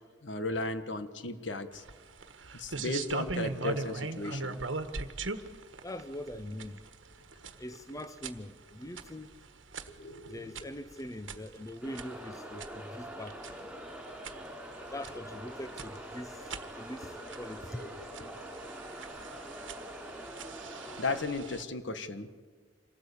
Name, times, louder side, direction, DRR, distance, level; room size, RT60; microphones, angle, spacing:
voice 1, 0.2-1.8 2.5-4.6 9.9-10.4 17.8-18.4 21.0-22.3, left 2 dB, 75° left, 1.5 m, -36 dB
sound 1, 1.7-21.6, right 3 dB, 85° right, 1.4 m, -42 dB
voice 2, 5.8-6.8 7.6-9.3 10.3-13.7 14.9-16.4 16.8-17.1 17.4-17.9, left 1 dB, 20° left, 0.8 m, -42 dB
sound 2, 11.8-21.2, equal, 5° right, 4.4 m, -44 dB
26.5 x 17.5 x 8.5 m
head